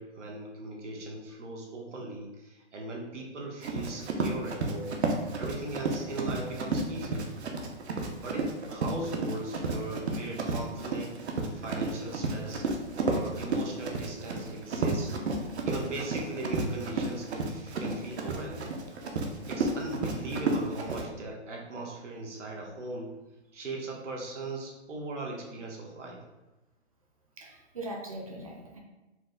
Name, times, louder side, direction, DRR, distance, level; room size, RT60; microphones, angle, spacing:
voice 1, 0.0-5.0 5.4-7.3 8.2-11.2 11.5-12.7 12.9-18.8 19.5-23.1 23.5-26.2, right 2 dB, 85° right, -1 dB, 1.3 m, -39 dB
Run, 3.6-21.0, right 3 dB, 65° right, 0.7 m, -32 dB
voice 2, 27.4-28.8, right 1 dB, 30° right, -1 dB, 0.5 m, -40 dB
4.6 x 2.2 x 3.8 m, 1.1 s
hypercardioid pair, 165°, 35 cm